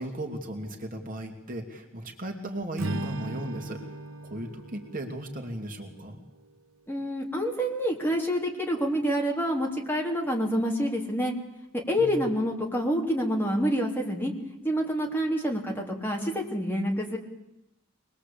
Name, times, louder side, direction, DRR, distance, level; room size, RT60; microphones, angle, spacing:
voice 1, 0.0-3.8 4.2-6.2 12.0-12.2, right 1 dB, 40° right, 2 dB, 2.8 m, -36 dB
Strum, 2.7-7.2, right 2 dB, 80° right, 1.4 m, -38 dB
voice 2, 6.9-11.3 11.9-14.3 14.6-17.2, equal, 10° left, 0 dB, 3.5 m, -27 dB
24.5 x 21.0 x 8.6 m, 0.90 s
head